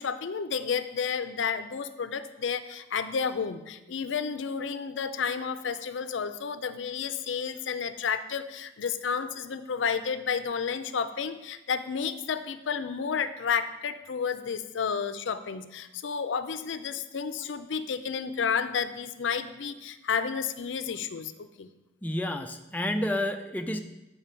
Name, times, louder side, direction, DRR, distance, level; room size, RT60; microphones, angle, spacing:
voice 1, 0.0-21.7, left 6 dB, 75° left, 11 dB, 0.5 m, -31 dB
voice 2, 22.0-23.8, left 1 dB, 10° left, 5 dB, 0.3 m, -30 dB
8.3 x 5.7 x 4.5 m, 1.0 s
head